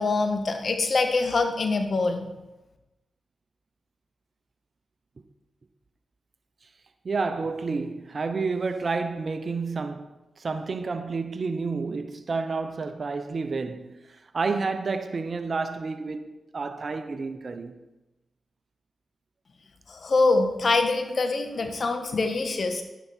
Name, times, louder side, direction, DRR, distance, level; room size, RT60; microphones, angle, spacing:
voice 1, 0.0-2.3 19.9-22.8, left 3 dB, 60° left, 1.6 m, -24 dB
voice 2, 7.0-17.7, right 4 dB, 55° right, 1.0 m, -30 dB
11.5 x 9.5 x 4.6 m
supercardioid pair, 40°, 0 cm